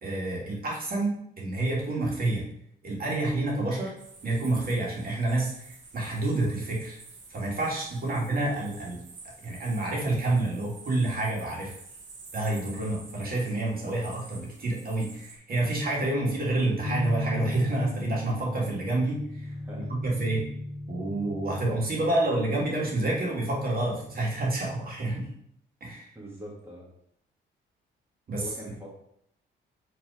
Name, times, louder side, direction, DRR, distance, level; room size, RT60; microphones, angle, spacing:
voice 1, 0.0-2.5 2.8-4.0 4.2-7.0 7.3-9.0 9.4-11.7 12.3-19.5 20.0-20.5 20.9-25.3 25.8-26.1 28.3-28.5, right 2 dB, 50° right, -3 dB, 2.4 m, -28 dB
sound 1, 4.0-15.4, right 3 dB, 65° right, 1.6 m, -49 dB
voice 2, 8.0-8.6 19.5-20.0 26.2-26.9 28.4-28.9, equal, 10° right, -5 dB, 2.0 m, -44 dB
sound 2, 16.8-24.5, left 1 dB, 65° left, 0.8 m, -37 dB
5.8 x 3.9 x 5.0 m, 0.72 s
cardioid pair, 90°, 20 cm